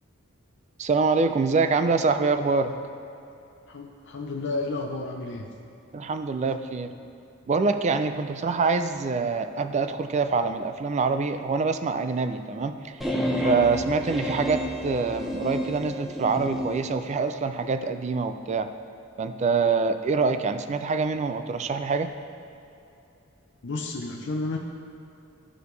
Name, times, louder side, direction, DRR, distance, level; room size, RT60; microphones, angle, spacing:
voice 1, 0.8-2.7 5.9-6.9 7.5-13.0 13.4-18.7 19.2-22.1, right 4 dB, 35° right, 9 dB, 0.3 m, -25 dB
voice 2, 3.7-5.5 23.6-24.6, left 2 dB, 60° left, 1 dB, 0.6 m, -31 dB
sound 1, 13.0-16.8, equal, ahead, 0.8 m, -30 dB
13.5 x 5.0 x 3.2 m, 2.7 s
head